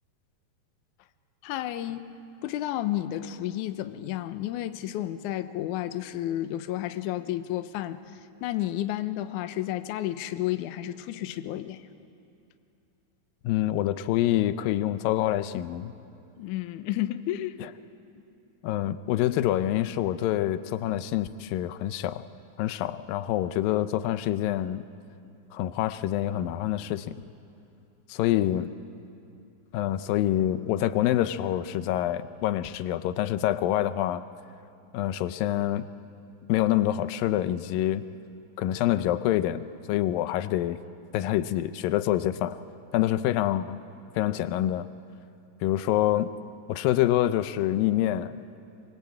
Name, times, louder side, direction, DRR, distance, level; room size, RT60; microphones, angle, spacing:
voice 1, 1.4-2.2 2.4-11.9 16.4-17.6, left 13 dB, 75° left, 10 dB, 2.1 m, -31 dB
voice 2, 13.4-15.9 17.6-17.7 18.6-22.2 22.6-24.8 25.5-27.2 28.1-28.7 29.7-34.2 34.9-35.9 36.5-38.0 38.6-40.8 41.1-42.6 42.9-43.8 44.2-44.9 45.6-46.3 46.7-48.4, left 13 dB, 90° left, 13 dB, 2.5 m, -26 dB
23.0 x 23.0 x 8.6 m, 2.7 s
omnidirectional pair, 3.9 m